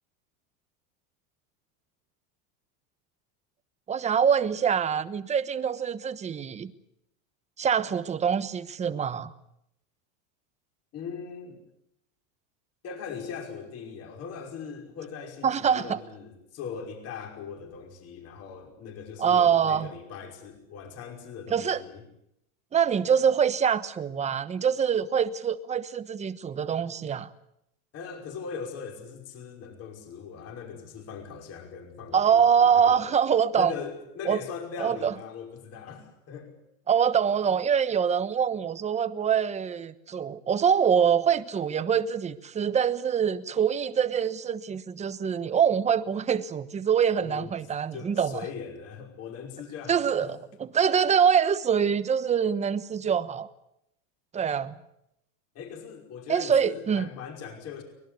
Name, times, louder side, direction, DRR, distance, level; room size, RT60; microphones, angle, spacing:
voice 1, 3.9-6.7 7.6-9.3 15.4-16.0 19.2-19.9 21.5-21.8 22.7-27.3 32.1-33.7 34.2-34.4 34.8-35.1 36.9-48.4 49.9-53.5 54.3-54.7 56.3-57.1, right 7 dB, 15° right, 1.1 m, -24 dB
voice 2, 10.9-11.6 12.8-22.0 27.9-33.1 33.5-36.5 47.2-47.5 47.9-50.3 55.5-57.8, left 6 dB, 35° left, 5.5 m, -40 dB
24.0 x 21.5 x 8.3 m
supercardioid pair, 155°, 41 cm